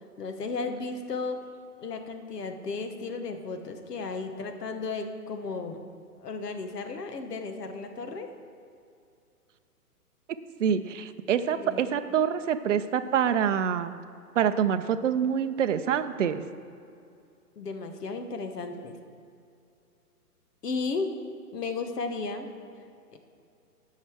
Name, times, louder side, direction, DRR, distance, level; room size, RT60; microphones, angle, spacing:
voice 1, 0.2-1.4 1.8-5.8 6.2-8.3 11.5-11.8 17.6-18.9 20.6-21.2 21.5-22.5 23.1-23.2, left 4 dB, 80° left, 6 dB, 1.2 m, -34 dB
voice 2, 10.6-13.9 14.4-16.4, right 8 dB, 55° right, 10 dB, 0.5 m, -26 dB
7.8 x 5.6 x 7.7 m, 2.5 s
hypercardioid pair, 170°, 47 cm